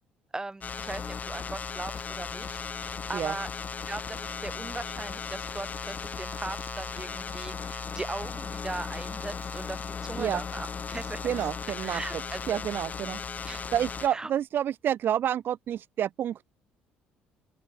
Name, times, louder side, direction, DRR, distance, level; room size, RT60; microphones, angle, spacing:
voice 1, 0.3-3.5 3.9-11.5 11.8-12.6 13.4-13.6 14.1-14.3, right 2 dB, 15° right, 5.3 m, -39 dB
sound 1, 0.6-14.1, left 6 dB, 40° left, 5.4 m, -36 dB
voice 2, 11.2-12.0 12.5-13.2 13.7-16.4, right 10 dB, 60° right, 2.1 m, -29 dB
open air
supercardioid pair, 70°, 4 cm